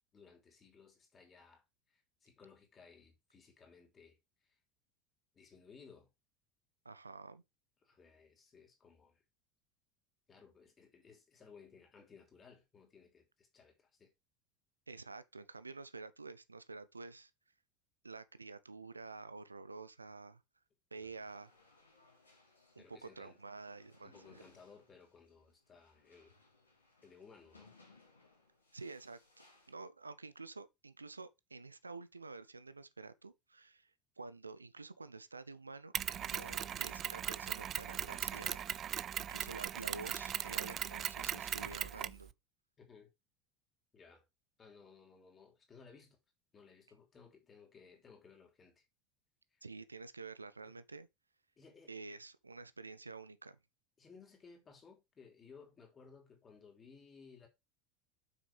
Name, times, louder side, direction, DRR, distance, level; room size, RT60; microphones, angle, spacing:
voice 1, 0.1-4.6 5.3-6.1 7.8-9.2 10.3-14.1 21.0-21.2 22.8-23.3 24.0-26.4 27.0-27.7 36.5-36.8 42.8-43.1 43.9-44.2 44.6-46.2 46.5-48.8 49.5-49.6 50.6-50.8 51.6-51.9 54.0-57.5, left 5 dB, 25° left, 3.2 m, -60 dB
voice 2, 6.8-7.4 14.9-17.3 18.0-20.4 20.9-21.5 22.8-24.4 28.7-33.9 34.2-42.3 49.6-51.1 51.9-53.6, right 3 dB, 85° right, 0.6 m, -49 dB
sound 1, 21.1-29.7, left 3 dB, 80° left, 2.9 m, -66 dB
Mechanisms, 35.9-42.2, right 10 dB, 35° right, 0.4 m, -39 dB
7.8 x 6.2 x 3.3 m
figure-of-eight pair, 75°, 0 cm